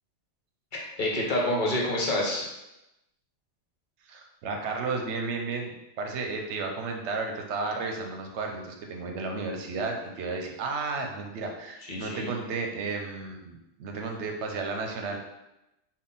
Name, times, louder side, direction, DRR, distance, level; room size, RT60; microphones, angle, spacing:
voice 1, 0.7-2.5 11.8-12.3, left 1 dB, 50° left, -2 dB, 0.8 m, -28 dB
voice 2, 4.1-13.5 13.8-15.2, right 4 dB, 75° right, 3 dB, 0.9 m, -33 dB
3.7 x 2.3 x 3.9 m, 0.93 s
omnidirectional pair, 1.2 m